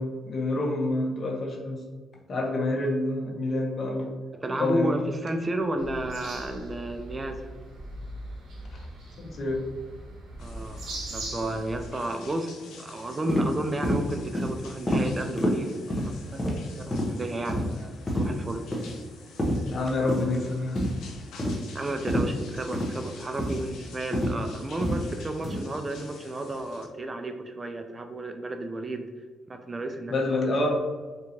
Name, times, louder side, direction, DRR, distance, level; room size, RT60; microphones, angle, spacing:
voice 1, 0.0-1.8 2.3-4.1 4.6-5.0 9.2-9.6 19.7-20.8 30.1-30.9, left 2 dB, 50° left, 0 dB, 0.9 m, -27 dB
voice 2, 4.3-7.5 10.4-16.4 16.8-18.6 21.7-29.1 29.5-30.2, right 1 dB, 25° right, 6 dB, 0.3 m, -32 dB
sound 1, 5.8-11.9, right 1 dB, 75° right, 1.0 m, -40 dB
sound 2, 10.4-26.9, left 4 dB, 85° left, 0.6 m, -49 dB
sound 3, 13.3-13.5 13.8-14.0 14.3-14.5 14.9-15.0 15.4-15.5 15.9-16.1 16.4-16.6 16.9-17.1 17.5-17.7 18.1-18.3 18.7-18.9 19.4-19.6 20.1-20.3 20.8-21.0 21.4-21.6 22.1-22.3 22.7-22.9 23.4-23.6 24.1-24.4 24.8-25.0 25.4-25.6, equal, 20° left, 0.8 m, -26 dB
3.7 x 2.7 x 2.8 m, 1.4 s
cardioid pair, 90°, 0 cm